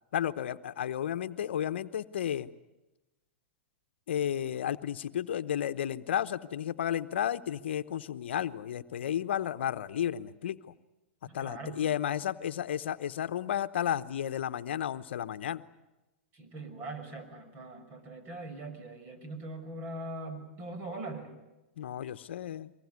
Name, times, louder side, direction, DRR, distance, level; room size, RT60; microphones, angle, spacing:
voice 1, 0.1-2.5 4.1-10.6 11.3-15.6 21.8-22.7, left 10 dB, 75° left, 13 dB, 0.9 m, -32 dB
voice 2, 11.3-11.9 16.3-21.3, right 2 dB, 35° right, 8 dB, 6.0 m, -41 dB
24.0 x 21.5 x 9.6 m, 1.0 s
hypercardioid pair, 120°, 6 cm